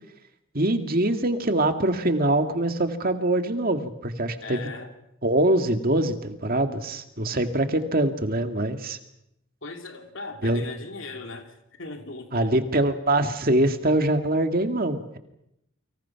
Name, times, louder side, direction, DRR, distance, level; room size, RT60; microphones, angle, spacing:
voice 1, 0.5-4.7 5.2-9.0 10.4-10.6 12.3-15.2, right 1 dB, 45° right, 6 dB, 2.1 m, -24 dB
voice 2, 4.4-4.9 9.6-12.5, left 3 dB, 65° left, 4 dB, 2.9 m, -38 dB
30.0 x 25.0 x 5.9 m, 0.84 s
head